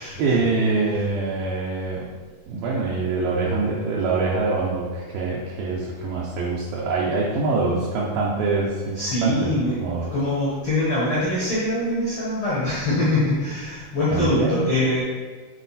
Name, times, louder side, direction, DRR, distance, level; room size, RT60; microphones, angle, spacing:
voice 1, 0.0-2.1 2.5-10.1 14.1-14.7, right 3 dB, 75° right, -4 dB, 2.2 m, -24 dB
voice 2, 8.9-9.7 10.1-15.0, left 1 dB, 80° left, -8 dB, 1.2 m, -23 dB
8.2 x 4.2 x 4.2 m, 1.4 s
omnidirectional pair, 4.9 m